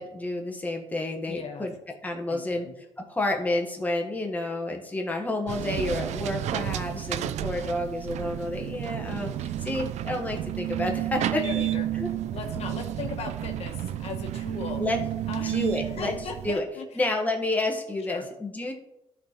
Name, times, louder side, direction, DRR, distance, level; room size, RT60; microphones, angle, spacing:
voice 1, 0.0-1.7 2.0-2.7 3.0-11.4 12.0-12.1 14.8-15.0 15.4-16.1 16.4-16.6 17.0-18.7, left 2 dB, 15° left, 2 dB, 1.2 m, -30 dB
voice 2, 1.3-1.7 2.3-2.8 11.3-11.9 12.3-14.8 15.3-16.9 18.0-18.3, left 5 dB, 65° left, 4 dB, 1.1 m, -38 dB
sound 1, 5.5-16.5, right 12 dB, 80° right, 0.4 m, -31 dB
12.5 x 4.1 x 4.3 m, 0.88 s
cardioid pair, 115°, 12 cm